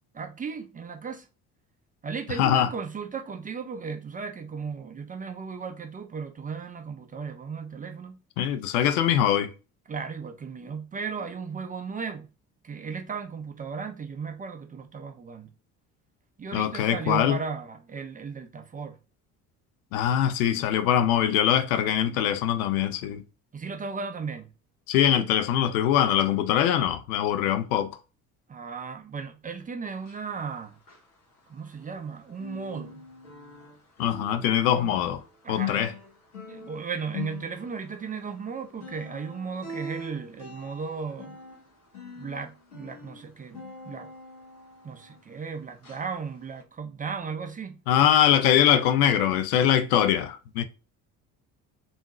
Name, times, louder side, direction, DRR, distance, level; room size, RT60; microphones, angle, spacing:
voice 1, 0.2-1.3 2.0-8.2 9.9-12.3 12.6-15.5 16.4-19.0 23.5-24.5 28.5-30.8 31.5-33.0 35.4-36.0 36.5-41.4 42.2-44.1 44.8-47.8, right 5 dB, 20° right, 0.4 m, -36 dB
voice 2, 8.4-9.5 16.5-17.4 19.9-23.2 24.9-27.9 34.0-35.2 35.5-35.9 47.9-50.6, left 10 dB, 70° left, 0.6 m, -23 dB
sound 1, 29.9-32.1 32.3-45.5 45.8-46.1 46.5-46.6, left 4 dB, 90° left, 1.0 m, -42 dB
3.5 x 2.5 x 2.9 m
hypercardioid pair, 55°, 44 cm